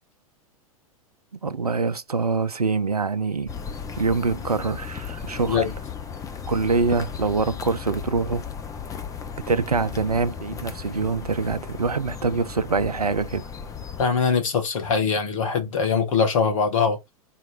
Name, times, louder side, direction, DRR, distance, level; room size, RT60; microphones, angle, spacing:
voice 1, 1.4-3.6 4.0-5.6 6.5-8.4 9.5-13.5, right 4 dB, 90° right, 0.6 m, -24 dB
sound 1, 3.5-14.1, left 7 dB, 20° left, 0.8 m, -35 dB
voice 2, 14.0-17.0, left 5 dB, 60° left, 1.9 m, -22 dB
3.9 x 3.0 x 4.4 m
figure-of-eight pair, 95°, 19 cm